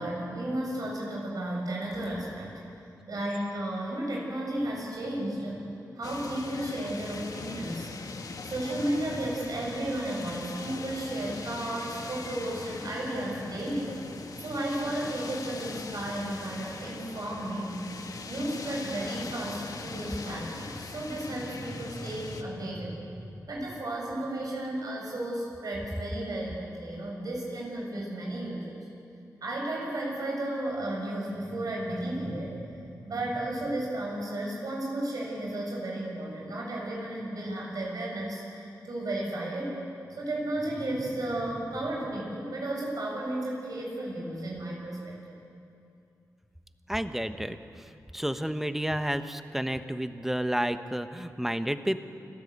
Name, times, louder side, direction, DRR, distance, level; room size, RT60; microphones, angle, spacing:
voice 1, 0.0-2.6 3.1-5.6 6.0-7.9 8.4-13.9 14.4-17.8 18.3-23.2 23.5-28.8 29.4-39.8 40.1-45.1, right 1 dB, 65° right, -2 dB, 7.8 m, -33 dB
sound 1, 6.0-22.4, left 4 dB, 65° left, 1.6 m, -41 dB
voice 2, 46.9-47.9 48.1-52.0, equal, 5° right, 9 dB, 1.1 m, -31 dB
28.5 x 13.0 x 8.3 m, 2.6 s
cardioid pair, 60°, 7 cm